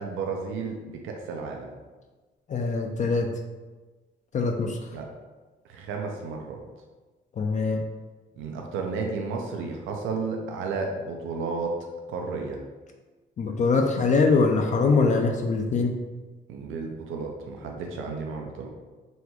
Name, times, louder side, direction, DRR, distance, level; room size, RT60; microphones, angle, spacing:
voice 1, 0.0-1.7 4.9-5.1 5.7-6.6 8.4-11.8 12.1-12.6 16.5-18.7, right 4 dB, 85° right, 1 dB, 0.5 m, -32 dB
voice 2, 2.5-3.3 4.3-4.8 7.4-7.8 13.4-16.0, left 4 dB, 40° left, 3 dB, 0.4 m, -23 dB
4.1 x 2.2 x 2.9 m, 1.3 s
cardioid pair, 90°, 20 cm